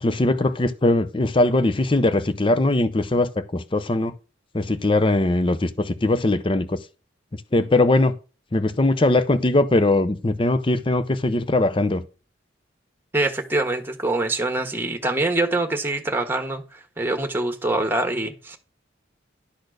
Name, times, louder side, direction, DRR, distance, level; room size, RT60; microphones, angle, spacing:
voice 1, 0.0-4.1 4.5-6.8 7.5-8.1 8.5-12.0, left 2 dB, 25° left, 0.6 m, -20 dB
voice 2, 13.1-18.6, right 2 dB, 10° right, 1.4 m, -24 dB
11.5 x 4.3 x 6.4 m
head